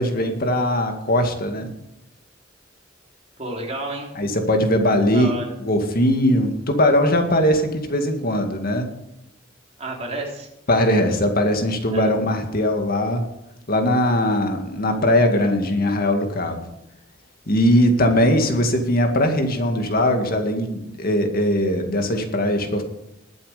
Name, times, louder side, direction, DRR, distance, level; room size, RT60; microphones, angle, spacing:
voice 1, 0.0-1.7 4.2-5.3 5.6-8.9 10.7-13.2 13.7-16.6 17.5-22.8, left 1 dB, 50° left, 5 dB, 2.1 m, -20 dB
voice 2, 3.4-4.1 5.1-5.5 9.8-10.5 11.9-12.1, right 2 dB, 35° right, -1 dB, 3.6 m, -30 dB
20.5 x 7.9 x 5.2 m, 0.87 s
head